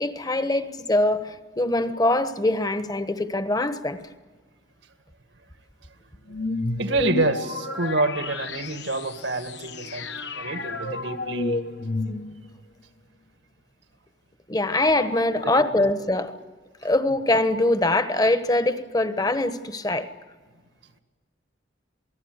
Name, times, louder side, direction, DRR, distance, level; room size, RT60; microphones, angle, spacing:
voice 1, 0.0-4.0 14.5-16.3 16.8-20.1, left 2 dB, 20° left, 11 dB, 1.2 m, -23 dB
sound 1, 6.3-12.6, left 2 dB, 65° left, 1.2 m, -31 dB
voice 2, 6.8-11.6 15.4-15.8, right 2 dB, 80° right, 9 dB, 2.1 m, -27 dB
28.0 x 19.0 x 8.1 m, 1.4 s
head